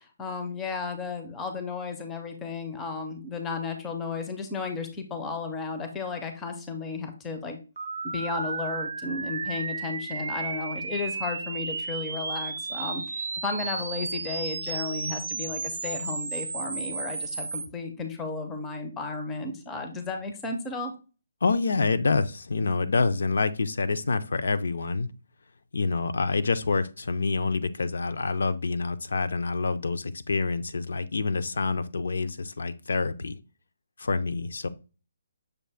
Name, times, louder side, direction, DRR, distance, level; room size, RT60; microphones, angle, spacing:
voice 1, 0.0-7.6 8.0-20.9, left 4 dB, 10° left, 0.4 m, -34 dB
sound 1, 7.8-17.7, right 4 dB, 75° right, 0.4 m, -33 dB
voice 2, 21.4-25.1 25.7-33.4 34.0-34.7, left 4 dB, 70° left, 0.4 m, -27 dB
6.4 x 2.4 x 3.3 m
hypercardioid pair, 175°, 0 cm